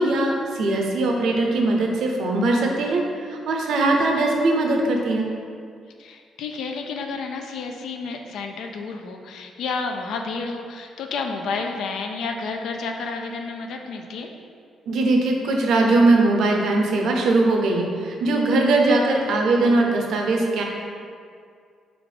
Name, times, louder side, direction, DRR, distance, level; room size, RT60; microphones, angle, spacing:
voice 1, 0.0-3.0 3.3-5.3 14.9-20.6, right 2 dB, 75° right, 1 dB, 0.6 m, -20 dB
voice 2, 6.0-14.3, left 4 dB, 75° left, 4 dB, 0.4 m, -30 dB
3.5 x 3.4 x 3.8 m, 2.2 s
cardioid pair, 90°, 0 cm